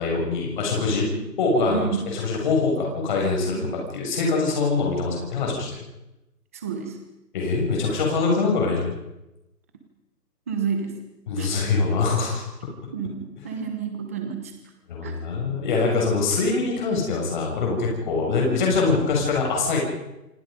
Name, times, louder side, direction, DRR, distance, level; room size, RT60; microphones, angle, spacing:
voice 1, 0.0-1.0 1.4-5.8 7.3-8.9 11.3-12.4 14.9-19.8, left 4 dB, 30° left, -1 dB, 7.1 m, -23 dB
voice 2, 1.7-2.0 3.5-3.8 6.5-7.0 10.5-10.9 11.4-11.5 12.9-14.5 15.0-15.1, right 7 dB, 10° right, 5 dB, 1.0 m, -30 dB
27.5 x 25.5 x 5.3 m, 0.95 s
hypercardioid pair, 170°, 49 cm